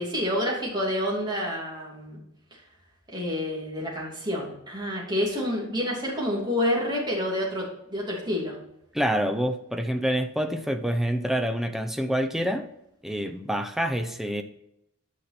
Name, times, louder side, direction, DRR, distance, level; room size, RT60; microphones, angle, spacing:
voice 1, 0.0-2.2 2.5-2.6 3.1-8.6, left 1 dB, 20° right, -4 dB, 2.9 m, -28 dB
voice 2, 8.9-12.7 13.0-14.4, equal, ahead, 7 dB, 0.6 m, -27 dB
9.5 x 5.9 x 4.3 m, 0.80 s
head